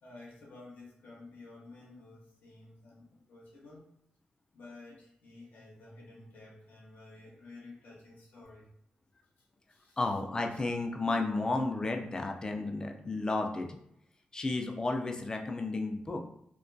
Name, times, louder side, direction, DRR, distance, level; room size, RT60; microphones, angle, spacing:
voice 1, 0.0-3.9 4.5-8.7 9.7-10.0, left 2 dB, 90° left, -4 dB, 0.6 m, -52 dB
voice 2, 10.0-13.7 14.3-16.3, left 2 dB, 25° left, 3 dB, 0.3 m, -32 dB
2.3 x 2.2 x 2.5 m, 0.74 s
wide cardioid pair, 110°, 3 cm